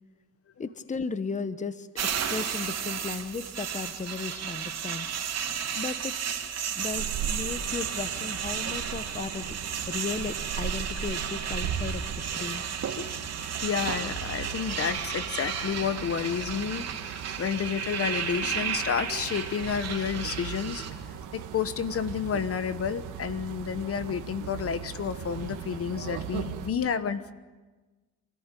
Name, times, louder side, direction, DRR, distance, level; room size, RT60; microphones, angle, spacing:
voice 1, 0.6-1.9 2.3-5.1 5.7-6.4 6.7-9.5 9.9-12.0 12.3-12.6 26.9-27.1, left 4 dB, 25° left, 13 dB, 1.0 m, -35 dB
sound 1, 2.0-20.9, right 7 dB, 60° right, 3.0 m, -33 dB
sound 2, 6.8-26.7, right 8 dB, 90° right, 1.9 m, -38 dB
voice 2, 13.6-16.9 17.4-20.8 21.3-27.3, left 7 dB, 50° left, 13 dB, 1.1 m, -30 dB
25.5 x 14.5 x 9.1 m, 1.3 s
cardioid pair, 90°, 30 cm